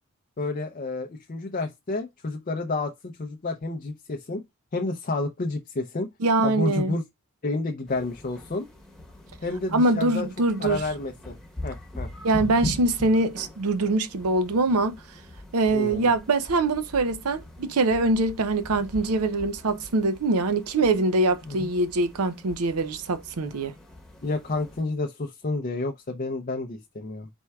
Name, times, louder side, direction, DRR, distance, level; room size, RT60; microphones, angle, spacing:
voice 1, 0.4-4.4 4.7-6.1 6.4-7.0 7.4-8.7 9.4-10.3 10.6-11.4 11.6-12.1 15.7-16.1 21.4-21.7 24.2-27.3, left 3 dB, 35° left, 0.5 m, -30 dB
voice 2, 6.2-7.0 9.7-10.8 12.2-15.0 15.5-23.7, right 2 dB, 80° right, 0.6 m, -23 dB
sound 1, 7.9-24.8, left 1 dB, ahead, 1.0 m, -41 dB
4.5 x 4.3 x 2.2 m
head